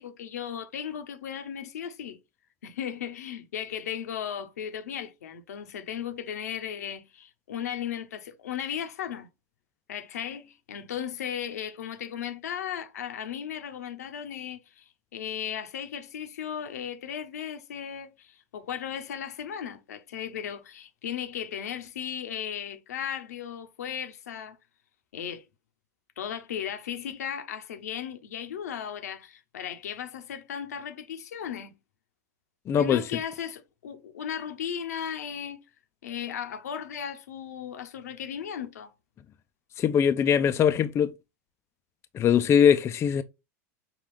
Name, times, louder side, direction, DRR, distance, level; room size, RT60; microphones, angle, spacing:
voice 1, 0.0-2.2 2.6-9.3 9.9-14.8 15.1-24.6 25.1-25.4 26.2-31.7 32.8-35.6 36.0-38.9, left 9 dB, 80° left, 0.8 m, -36 dB
voice 2, 32.7-33.0 39.8-41.1 42.1-43.2, left 8 dB, 30° left, 0.4 m, -21 dB
5.8 x 2.4 x 3.3 m
hypercardioid pair, 95°, 8 cm